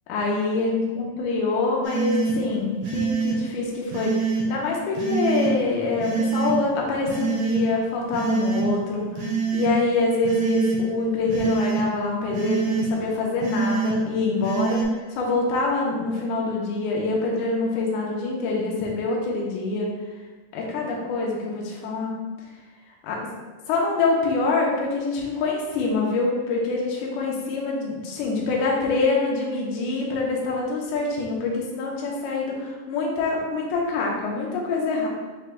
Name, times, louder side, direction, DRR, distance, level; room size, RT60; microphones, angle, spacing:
voice 1, 0.1-19.9 20.5-22.1 23.1-23.2 23.7-35.1, left 3 dB, 75° left, -2 dB, 2.1 m, -25 dB
sound 1, 1.8-2.3 2.8-3.4 3.9-4.4 5.0-5.5 6.0-6.5 7.1-7.6 8.1-8.7 9.2-9.7 10.2-10.8 11.3-11.8 12.3-12.9 13.4-13.9 14.4-14.8, right 6 dB, 70° right, 1.5 m, -25 dB
6.8 x 3.1 x 2.2 m, 1.3 s
omnidirectional pair, 3.8 m